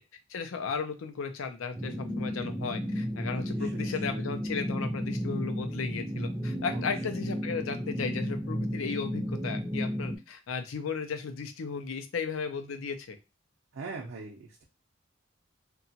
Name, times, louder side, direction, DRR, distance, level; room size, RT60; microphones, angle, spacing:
voice 1, 0.3-13.2, left 5 dB, 90° left, 7 dB, 0.5 m, -35 dB
sound 1, 1.8-10.2, equal, 5° right, 0.4 m, -33 dB
voice 2, 3.6-4.2 6.7-6.9 13.7-14.6, right 4 dB, 75° right, -2 dB, 0.5 m, -42 dB
2.8 x 2.2 x 2.7 m, 0.27 s
head